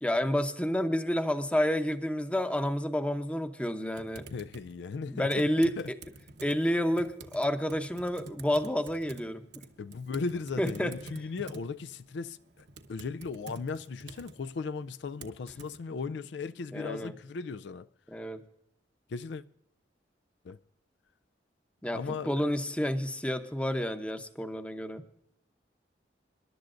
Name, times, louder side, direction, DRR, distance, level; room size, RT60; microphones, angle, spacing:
voice 1, 0.0-4.3 5.1-5.7 6.4-9.4 10.6-10.9 16.7-17.1 18.1-18.4 21.8-25.0, equal, 5° left, 0.8 m, -29 dB
Typing, 4.0-15.8, right 2 dB, 70° right, 1.0 m, -49 dB
voice 2, 4.3-5.5 5.8-5.9 9.8-17.9 19.1-19.4 20.4-20.6 21.9-22.5, left 4 dB, 75° left, 0.4 m, -37 dB
26.0 x 11.5 x 2.5 m
head